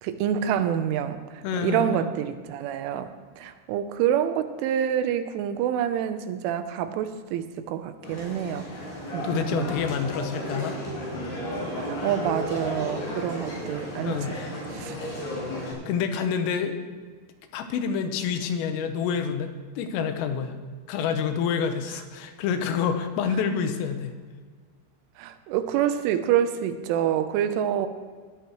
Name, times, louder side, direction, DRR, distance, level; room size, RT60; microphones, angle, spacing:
voice 1, 0.0-8.7 9.1-9.7 11.7-14.4 14.7-15.0 25.2-27.9, right 10 dB, 80° right, 9 dB, 3.1 m, -27 dB
voice 2, 1.4-2.1 9.2-10.8 14.0-14.5 15.6-16.8 17.5-20.6 20.9-24.1, left 7 dB, 85° left, 7 dB, 3.6 m, -28 dB
sound 1, 8.0-15.7, equal, 55° left, 7.1 m, -34 dB
19.5 x 13.0 x 3.1 m, 1.5 s
omnidirectional pair, 5.8 m